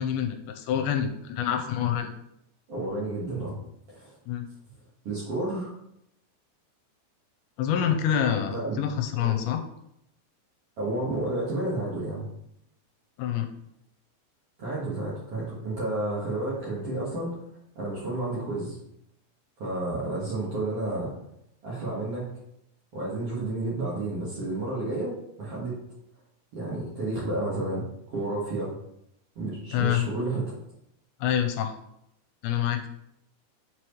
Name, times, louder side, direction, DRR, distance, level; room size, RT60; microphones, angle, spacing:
voice 1, 0.0-2.1 4.3-4.5 7.6-9.6 13.2-13.5 29.7-30.1 31.2-31.8 32.4-32.9, left 9 dB, 85° left, 6 dB, 2.8 m, -26 dB
voice 2, 2.7-3.6 3.9-4.1 5.0-5.7 8.5-8.8 9.1-9.4 10.8-12.3 14.6-17.3 17.7-18.8 19.6-21.1 21.6-22.3 22.9-25.8 26.5-28.7 29.3-30.6, right 2 dB, 80° right, -6 dB, 1.3 m, -31 dB
7.5 x 4.7 x 3.1 m, 0.78 s
omnidirectional pair, 5.3 m